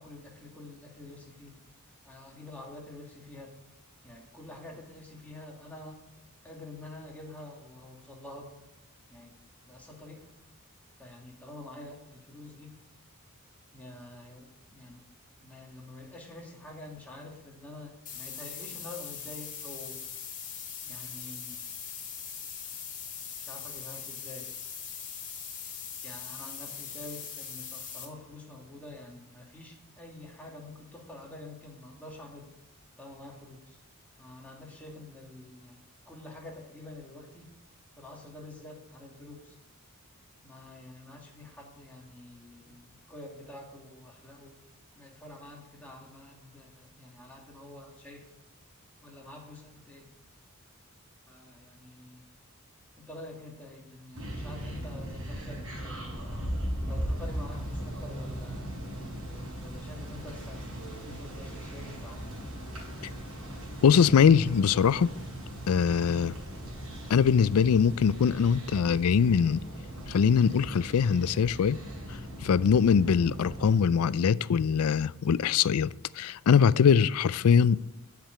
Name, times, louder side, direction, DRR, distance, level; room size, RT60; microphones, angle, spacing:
voice 1, 0.0-1.5 2.0-3.6 4.0-6.0 6.4-8.5 9.1-9.4 9.6-10.3 11.0-12.7 13.7-15.0 15.4-20.0 20.8-21.6 23.4-24.5 26.0-32.5 33.0-33.8 34.2-37.6 38.0-39.6 40.4-44.6 45.0-48.3 49.0-50.1 51.3-52.3 53.0-58.7 59.6-62.3, left 2 dB, 5° left, 2.5 m, -47 dB
sound 1, 18.1-28.1, left 7 dB, 35° left, 2.3 m, -41 dB
sound 2, 54.1-73.8, equal, 65° right, 5.0 m, -38 dB
voice 2, 63.8-65.1 65.7-66.3 67.1-69.6 70.1-71.8 72.4-75.9 76.2-77.8, left 6 dB, 70° left, 0.4 m, -22 dB
8.9 x 7.5 x 8.3 m
head